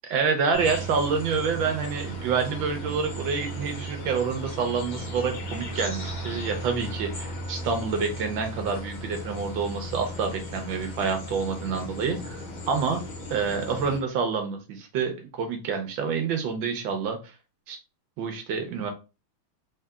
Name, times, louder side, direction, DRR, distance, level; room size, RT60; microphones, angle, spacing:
voice 1, 0.0-13.0 13.3-17.3 17.7-17.8 18.2-18.9, right 5 dB, 75° right, 5 dB, 1.4 m, -28 dB
sound 1, 0.5-14.0, right 1 dB, 75° left, 1.8 m, -36 dB
3.7 x 3.5 x 2.2 m, 0.30 s
omnidirectional pair, 2.2 m